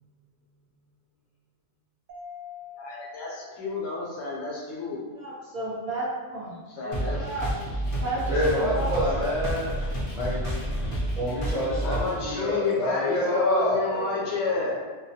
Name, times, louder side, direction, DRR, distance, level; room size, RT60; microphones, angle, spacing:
Mallet percussion, 2.1-4.6, left 7 dB, 90° right, 1.0 m, -45 dB
voice 1, 2.8-5.0 6.8-7.2 11.8-14.8, left 4 dB, 70° left, -4 dB, 0.9 m, -30 dB
voice 2, 5.1-7.5 8.0-8.9, right 2 dB, 50° right, -9 dB, 0.8 m, -33 dB
sound 1, 6.9-12.3, right 1 dB, 40° left, 0.5 m, -30 dB
voice 3, 8.3-9.7 10.1-10.5 11.2-14.7, left 1 dB, 5° right, -10 dB, 0.7 m, -27 dB
2.3 x 2.1 x 2.7 m, 1.3 s
omnidirectional pair, 1.3 m